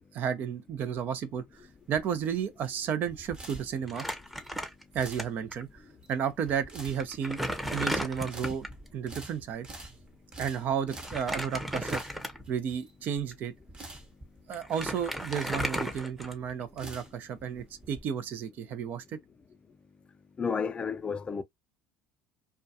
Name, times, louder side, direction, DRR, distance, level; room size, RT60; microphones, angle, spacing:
voice 1, 0.1-1.4 1.9-4.0 4.9-5.8 6.1-7.4 7.7-8.7 8.9-9.7 10.4-12.0 12.5-13.5 14.5-19.0, right 8 dB, 55° right, 0.5 m, -32 dB
sound 1, 1.5-18.0, right 2 dB, 30° right, 0.9 m, -48 dB
Crumpling crinkling, 3.9-5.2 5.5-5.6 6.5-6.6 7.0-8.8 11.0-12.6 13.2-13.3 14.2-14.3 14.5-16.6, equal, ahead, 0.7 m, -34 dB
voice 2, 20.4-21.4, left 6 dB, 30° left, 0.4 m, -31 dB
2.3 x 2.2 x 2.6 m
hypercardioid pair, 80°, 4 cm